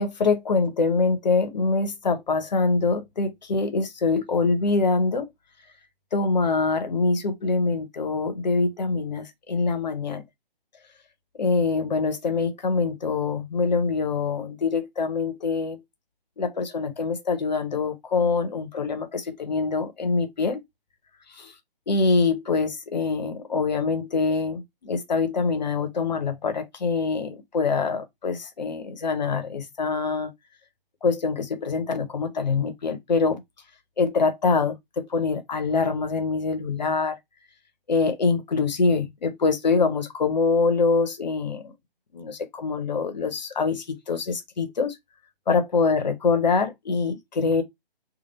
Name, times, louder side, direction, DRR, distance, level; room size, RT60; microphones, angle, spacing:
voice 1, 0.0-5.3 6.1-10.2 11.4-15.8 16.4-20.6 21.9-30.3 31.0-33.4 34.0-37.2 37.9-41.7 42.1-44.9 45.5-47.6, left 4 dB, 50° left, 0.9 m, -24 dB
3.3 x 2.5 x 3.9 m
figure-of-eight pair, 140°, 29 cm